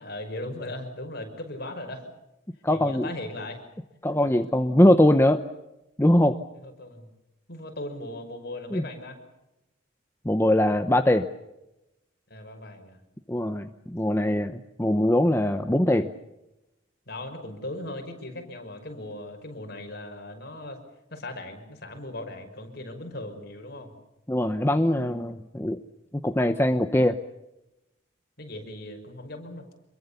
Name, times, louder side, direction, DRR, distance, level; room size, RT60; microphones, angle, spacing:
voice 1, 0.0-2.1 2.7-3.6 4.2-4.3 6.6-7.1 7.5-9.2 12.3-13.0 17.1-20.8 21.1-23.9 28.4-29.7, left 1 dB, 50° left, 5 dB, 5.9 m, -38 dB
voice 2, 2.6-3.1 4.0-5.4 6.0-6.4 8.7-8.8 10.2-11.3 13.3-16.1 24.3-25.8 26.2-27.2, left 1 dB, 10° left, 7 dB, 0.8 m, -22 dB
27.0 x 22.5 x 7.0 m, 0.94 s
head